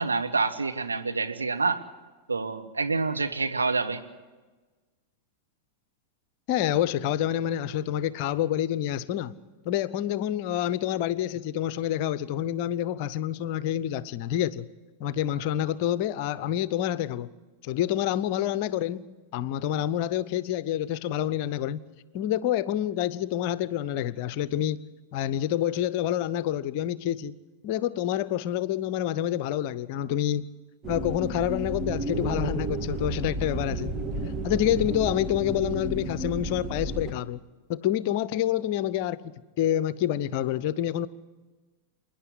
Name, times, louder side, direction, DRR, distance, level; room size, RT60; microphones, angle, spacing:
voice 1, 0.0-1.8 2.3-4.0, right 4 dB, 75° right, 1.4 m, -27 dB
voice 2, 6.5-9.3 9.6-14.6 15.0-17.3 17.6-19.0 19.3-21.8 22.1-24.8 25.1-27.3 27.6-30.5 30.9-33.9 34.4-37.4 37.7-39.2 39.6-41.1, left 11 dB, 45° left, 0.7 m, -27 dB
sound 1, 30.8-37.1, right 2 dB, 20° right, 1.7 m, -32 dB
27.5 x 10.0 x 9.8 m
figure-of-eight pair, 90°, 0 cm